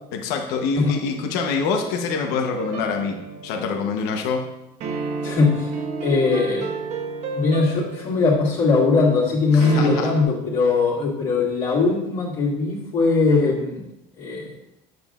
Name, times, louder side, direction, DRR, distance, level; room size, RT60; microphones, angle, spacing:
voice 1, 0.1-3.2 3.4-4.5 9.5-10.1, left 5 dB, 70° left, 3 dB, 1.0 m, -25 dB
sound 1, 2.6-3.9 4.8-8.7 9.6-10.2, right 4 dB, 40° right, 0.9 m, -31 dB
voice 2, 5.2-5.7 6.0-6.8 7.3-13.8 14.2-14.5, left 4 dB, 45° left, -7 dB, 2.2 m, -20 dB
9.1 x 7.6 x 2.5 m, 0.85 s
cardioid pair, 175°, 17 cm